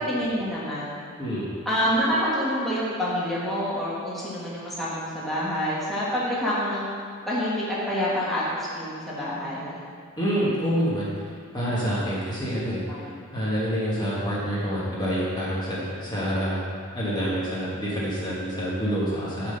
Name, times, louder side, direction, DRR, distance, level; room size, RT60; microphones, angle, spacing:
voice 1, 0.0-1.0 1.6-6.9 7.3-9.8 12.9-13.1, equal, ahead, -9 dB, 1.4 m, -27 dB
voice 2, 1.2-1.5 10.2-12.8 13.3-16.7 16.9-19.5, equal, 20° left, -8 dB, 1.3 m, -27 dB
7.2 x 3.8 x 6.5 m, 2.2 s
head